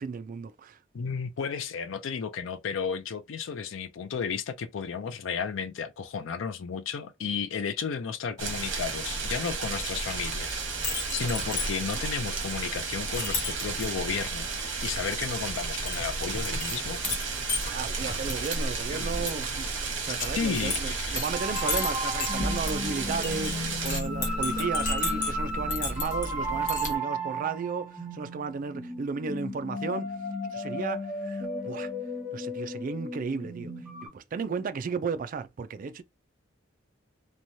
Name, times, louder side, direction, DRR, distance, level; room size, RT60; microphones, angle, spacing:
voice 1, 0.0-0.8 17.6-30.2 30.5-31.9 32.3-33.7 34.0-36.0, right 5 dB, 45° right, 0.3 m, -34 dB
voice 2, 0.9-10.6 11.1-17.4 18.9-19.4 20.0-21.2, left 6 dB, 75° left, 0.4 m, -33 dB
Chink clink, 8.4-26.9, left 2 dB, 40° left, 1.1 m, -35 dB
sound 1, 8.4-24.0, right 5 dB, 65° right, 1.0 m, -34 dB
sound 2, 21.3-34.1, equal, 5° right, 0.8 m, -34 dB
3.0 x 2.2 x 2.6 m
head